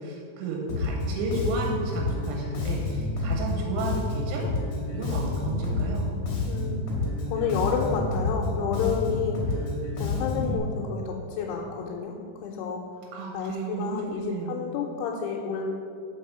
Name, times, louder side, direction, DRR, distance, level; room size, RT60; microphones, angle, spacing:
voice 1, 0.0-4.4 4.9-6.1 10.3-10.6 13.1-14.6, right 3 dB, 85° right, 0 dB, 3.1 m, -33 dB
Bass guitar, 0.7-10.6, left 2 dB, 50° left, 2.1 m, -29 dB
voice 2, 6.5-6.9 7.3-9.7 10.0-12.2 12.4-12.8 13.3-15.6, left 6 dB, 85° left, -2 dB, 3.0 m, -30 dB
5.9 x 5.4 x 6.5 m, 2.4 s
omnidirectional pair, 5.5 m